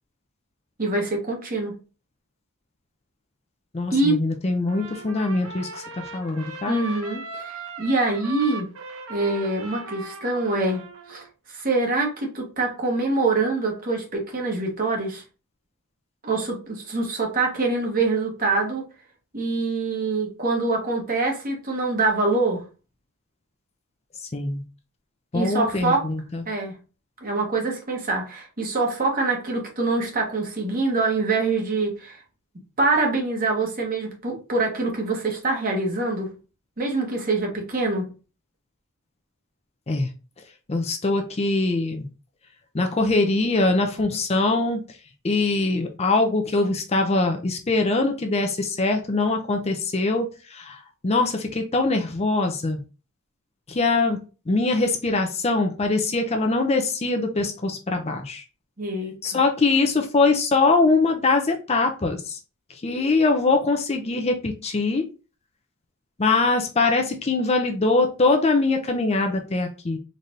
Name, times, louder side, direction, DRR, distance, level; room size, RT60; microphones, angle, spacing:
voice 1, 0.8-1.8 3.9-4.2 6.7-8.7 9.1-15.2 16.2-18.9 19.3-22.6 25.3-26.1 26.5-26.8 27.2-32.2 32.8-36.3 36.8-38.1 58.8-59.4, right 3 dB, 40° right, 1 dB, 1.3 m, -25 dB
voice 2, 3.7-6.8 24.3-24.6 25.3-26.4 39.9-40.1 40.7-42.1 42.7-44.8 45.2-50.8 51.0-52.8 53.7-54.2 54.5-58.4 59.2-62.4 62.8-65.1 66.2-70.0, left 3 dB, 30° left, 4 dB, 0.5 m, -22 dB
Trumpet, 4.7-11.3, right 3 dB, 75° right, 1.0 m, -38 dB
4.0 x 3.3 x 2.7 m, 0.33 s
head